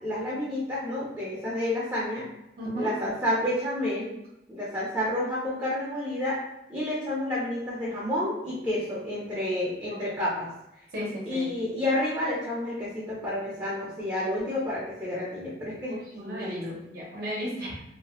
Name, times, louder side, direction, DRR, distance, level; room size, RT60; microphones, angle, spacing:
voice 1, 0.0-2.3 2.7-4.1 4.5-6.4 6.7-10.5 11.3-16.8, left 1 dB, 15° right, -7 dB, 0.7 m, -30 dB
voice 2, 2.6-2.9 9.9-10.2 10.9-11.5 15.9-17.8, equal, 60° right, -5 dB, 0.8 m, -35 dB
2.8 x 2.3 x 2.9 m, 0.86 s
head